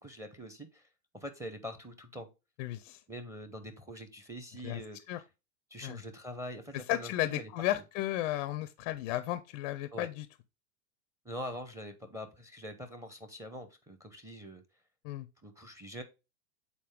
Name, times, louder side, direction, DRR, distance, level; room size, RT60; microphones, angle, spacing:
voice 1, 0.0-0.9 1.1-2.3 3.1-5.0 5.7-7.5 9.9-10.1 11.2-14.6 15.4-16.0, equal, 5° right, 0.7 m, -44 dB
voice 2, 2.6-3.0 4.6-4.8 5.1-5.2 5.8-6.0 6.7-10.3 15.0-15.3, left 15 dB, 35° left, 0.4 m, -34 dB
7.5 x 4.1 x 3.6 m
hypercardioid pair, 110°, 46 cm